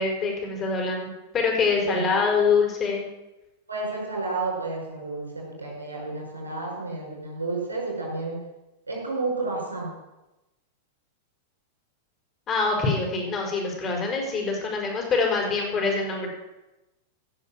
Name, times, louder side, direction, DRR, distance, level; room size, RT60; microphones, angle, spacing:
voice 1, 0.0-3.1 12.5-16.3, left 4 dB, 30° left, 1 dB, 4.8 m, -25 dB
voice 2, 1.8-2.1 3.7-8.3 8.9-9.9, right 3 dB, 90° right, -2 dB, 5.8 m, -31 dB
16.0 x 6.9 x 7.6 m, 1.0 s
figure-of-eight pair, 95°, 0 cm